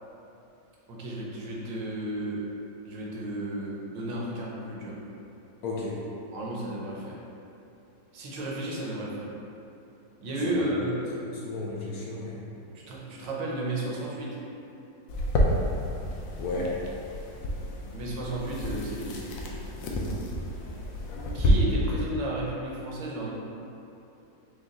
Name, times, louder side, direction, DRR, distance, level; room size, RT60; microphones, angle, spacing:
voice 1, 0.9-2.4 2.8-5.0 6.3-7.2 8.1-9.3 10.2-11.0 12.9-14.4 17.9-20.4 21.3-23.3, right 1 dB, 80° right, -4 dB, 1.4 m, -33 dB
voice 2, 5.6-6.0 10.5-10.7 11.4-12.4 16.4-16.8, left 2 dB, 70° left, -4 dB, 0.9 m, -33 dB
sound 1, 15.1-21.5, left 1 dB, 90° left, 1.3 m, -30 dB
5.1 x 2.3 x 3.7 m, 2.8 s
omnidirectional pair, 2.0 m